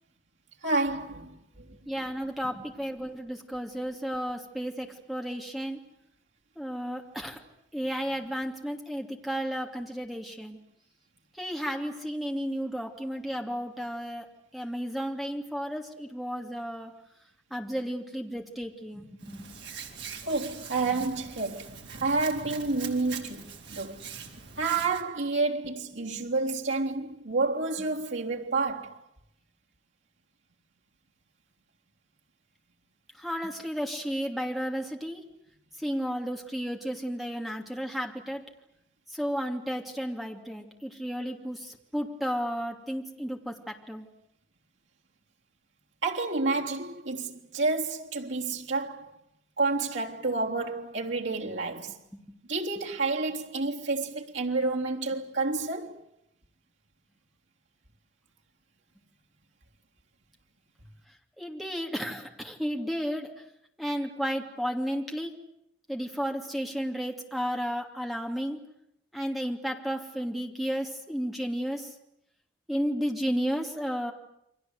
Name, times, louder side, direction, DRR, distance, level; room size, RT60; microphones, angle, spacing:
voice 1, 0.6-1.4 20.2-23.4 23.7-24.0 24.6-29.0 46.0-49.1 49.6-51.9 52.5-56.0, right 3 dB, 85° right, 3.5 m, -29 dB
voice 2, 1.9-5.8 6.6-7.4 7.7-10.6 11.4-14.3 14.5-16.9 17.5-19.5 33.2-35.2 35.8-38.4 39.1-44.1 61.4-63.3 63.8-65.3 65.9-68.6 69.1-71.9 72.7-74.1, equal, ahead, 2.8 m, -33 dB
Hands, 19.2-25.0, right 6 dB, 65° right, 3.9 m, -43 dB
29.5 x 24.0 x 8.1 m
head